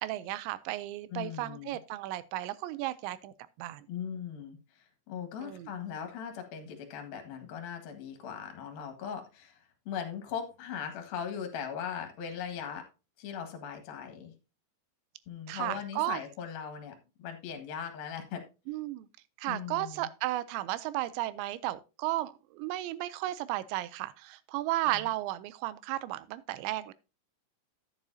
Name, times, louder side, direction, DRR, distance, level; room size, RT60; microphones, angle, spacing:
voice 1, 0.0-3.3 3.6-3.9 5.4-5.7 15.5-16.2 18.7-19.1 19.4-26.9, right 16 dB, 85° right, 2.7 m, -34 dB
voice 2, 1.1-1.8 3.9-9.6 9.9-12.9 13.2-14.3 15.3-18.4 19.5-20.1 24.9-25.1, left 8 dB, 60° left, 3.1 m, -39 dB
10.5 x 9.8 x 2.7 m
omnidirectional pair, 5.4 m